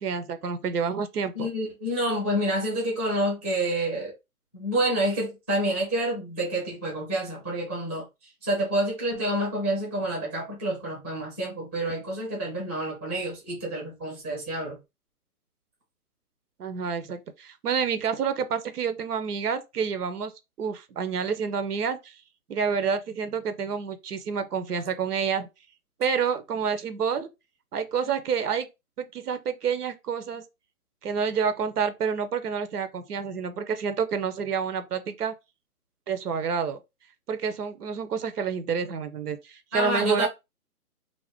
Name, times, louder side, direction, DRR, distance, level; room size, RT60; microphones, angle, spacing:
voice 1, 0.0-1.5 16.6-20.3 20.6-22.2 22.5-25.5 26.0-27.3 27.7-28.7 29.0-30.4 31.0-35.3 36.1-36.8 37.3-40.3, right 6 dB, 80° right, 0.7 m, -28 dB
voice 2, 1.3-4.1 4.5-8.0 8.4-14.8 39.7-40.3, right 1 dB, 10° right, 0.6 m, -28 dB
2.5 x 2.1 x 3.4 m
hypercardioid pair, 150°, 46 cm